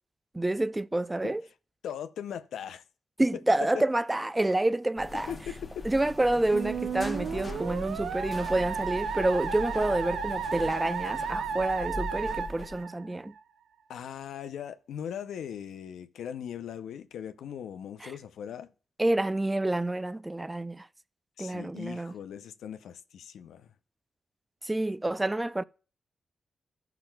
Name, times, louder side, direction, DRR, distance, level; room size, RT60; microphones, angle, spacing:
voice 1, 0.3-1.4 3.2-5.3 5.8-13.3 18.0-18.1 19.0-20.9 21.4-22.1 24.6-25.6, right 2 dB, 20° right, 0.3 m, -28 dB
voice 2, 1.8-2.8 3.7-3.8 5.1-5.9 13.9-18.7 21.4-23.7, left 9 dB, 85° left, 0.5 m, -39 dB
sound 1, 5.0-12.8, left 2 dB, 45° left, 0.9 m, -41 dB
Musical instrument, 6.5-13.4, right 6 dB, 85° right, 0.4 m, -34 dB
14.0 x 5.8 x 2.2 m
supercardioid pair, 50°, 0 cm